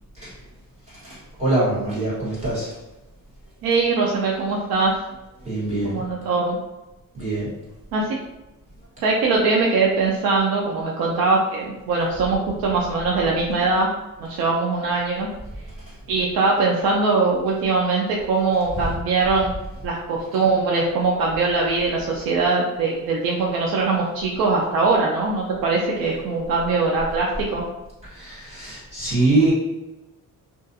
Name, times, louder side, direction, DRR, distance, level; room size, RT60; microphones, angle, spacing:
voice 1, 0.9-2.8 5.4-6.0 7.1-7.5 15.9-16.0 18.8-18.9 28.1-29.5, right 2 dB, 20° right, -10 dB, 1.3 m, -24 dB
voice 2, 3.6-5.0 5.8-6.6 7.9-8.2 9.0-13.9 14.2-15.3 16.1-19.5 19.8-27.6, right 3 dB, 85° right, -3 dB, 0.5 m, -21 dB
2.4 x 2.3 x 2.6 m, 1.0 s
cardioid pair, 155°, 35 cm